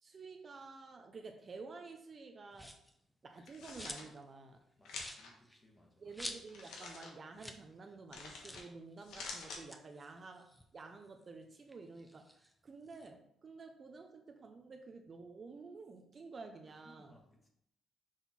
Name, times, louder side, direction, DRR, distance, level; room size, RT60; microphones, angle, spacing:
voice 1, 0.0-2.8 3.2-4.6 6.0-17.2, right 4 dB, 40° right, 5 dB, 0.7 m, -51 dB
sound 1, 2.5-3.0 3.4-4.2 4.5-4.6 4.9-6.8 7.1-7.2 7.4-7.7 7.9-8.0 8.4-8.7 9.5-11.2 11.6-13.1, equal, 5° left, 0.7 m, -49 dB
sound 2, 3.4-4.0 4.9-5.3 6.5-7.1 8.1-8.6 9.0-9.6, left 3 dB, 85° left, 1.3 m, -47 dB
voice 2, 4.8-6.1 16.6-17.5, left 1 dB, 20° left, 1 dB, 1.5 m, -65 dB
6.2 x 3.8 x 4.3 m, 0.75 s
cardioid pair, 90°, 0 cm